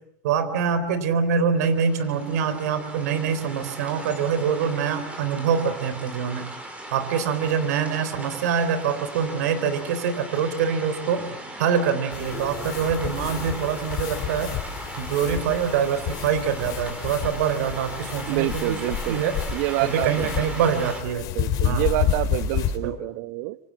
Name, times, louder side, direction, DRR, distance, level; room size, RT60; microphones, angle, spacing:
voice 1, 0.2-6.5 6.9-14.5 15.0-18.8 19.1-19.3 19.8-21.3 21.6-21.9 22.8-23.0, right 7 dB, 85° right, 3.7 m, -25 dB
sound 1, 1.6-21.0, right 1 dB, 15° right, 5.4 m, -38 dB
sound 2, 12.1-22.8, left 9 dB, 50° left, 5.2 m, -30 dB
voice 2, 18.3-19.2 19.5-20.5 21.3-23.6, right 18 dB, 65° right, 1.1 m, -27 dB
26.5 x 25.0 x 7.6 m
supercardioid pair, 130°, 9 cm